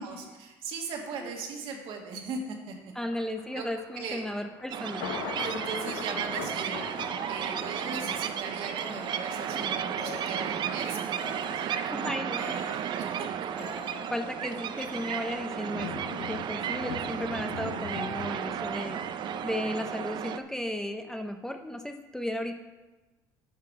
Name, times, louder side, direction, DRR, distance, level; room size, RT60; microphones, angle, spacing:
voice 1, 0.0-2.7 3.5-3.6 4.0-4.2 5.4-13.3, right 4 dB, 65° right, 1 dB, 1.8 m, -39 dB
voice 2, 2.9-5.1 12.0-12.5 14.1-19.0 19.4-22.6, left 1 dB, 5° left, 5 dB, 0.6 m, -35 dB
Thunder, 3.1-20.2 20.6-20.7, left 7 dB, 85° left, 0.8 m, -43 dB
sound 1, 4.7-20.4, right 9 dB, 50° right, 0.5 m, -34 dB
sound 2, 6.4-16.2, left 3 dB, 65° left, 1.1 m, -48 dB
9.6 x 5.8 x 4.7 m, 1.2 s
supercardioid pair, 90°, 10 cm